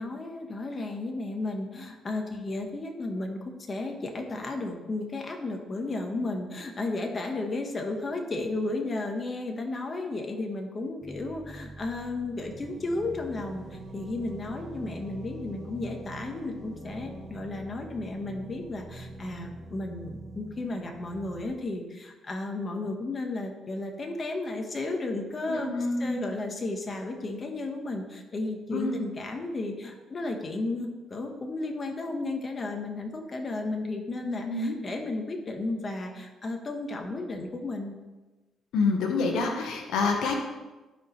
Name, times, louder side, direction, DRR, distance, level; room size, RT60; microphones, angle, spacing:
voice 1, 0.0-25.7 26.0-38.0, left 2 dB, 35° left, 3 dB, 1.3 m, -33 dB
sound 1, 11.0-21.4, right 1 dB, 40° right, 1.5 m, -44 dB
voice 2, 25.5-26.3 28.7-29.0 34.2-34.8 38.7-40.3, left 3 dB, 85° left, 2 dB, 1.1 m, -27 dB
13.5 x 5.0 x 3.2 m, 1.2 s
cardioid pair, 90°, 0 cm